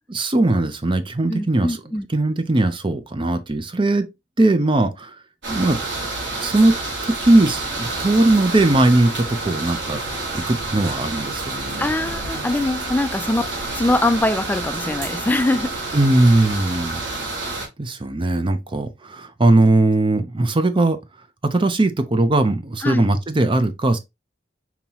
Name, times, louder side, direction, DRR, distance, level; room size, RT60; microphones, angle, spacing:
voice 1, 0.1-1.8 2.1-4.1 4.4-5.1 5.5-5.8 6.4-6.7 7.0-10.0 10.3-11.9 15.9-17.0 17.8-21.0 21.4-24.0, right 2 dB, 30° right, 0.6 m, -19 dB
voice 2, 1.3-2.1 11.8-15.7 18.1-18.2 22.8-23.1, left 2 dB, 10° left, 0.3 m, -22 dB
sound 1, 5.4-17.7, right 2 dB, 90° right, 1.8 m, -29 dB
5.5 x 2.9 x 2.9 m
head